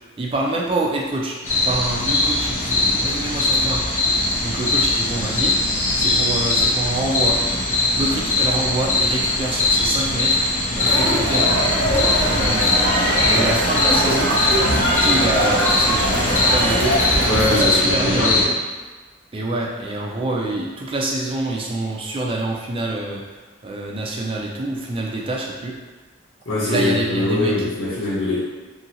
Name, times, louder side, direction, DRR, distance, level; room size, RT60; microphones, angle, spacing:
voice 1, 0.2-3.8 4.4-5.5 5.9-7.4 8.0-11.6 11.9-12.8 13.3-14.3 15.0-18.3 19.3-23.2 23.6-25.7 26.6-27.6, right 2 dB, 25° right, -2 dB, 0.3 m, -26 dB
sound 1, 1.4-18.4, left 2 dB, 40° left, 0.5 m, -21 dB
Crowd, 10.8-17.5, right 1 dB, 80° right, 1.3 m, -21 dB
Wind instrument woodwind instrument, 11.6-16.0, equal, 15° left, 0.9 m, -32 dB
voice 2, 17.3-18.5 26.5-28.4, left 1 dB, 80° left, -8 dB, 0.8 m, -22 dB
2.8 x 2.5 x 2.8 m, 1.3 s
head